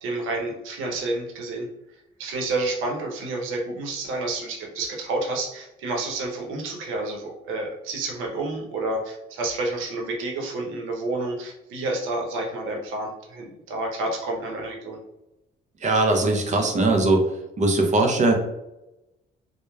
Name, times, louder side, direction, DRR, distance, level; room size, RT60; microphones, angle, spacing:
voice 1, 0.0-1.7 2.2-15.0, right 2 dB, 90° right, 0 dB, 0.7 m, -29 dB
voice 2, 15.8-17.2 17.6-18.3, right 2 dB, 35° right, 3 dB, 0.6 m, -20 dB
2.9 x 2.1 x 2.2 m, 0.92 s
cardioid pair, 90°, 20 cm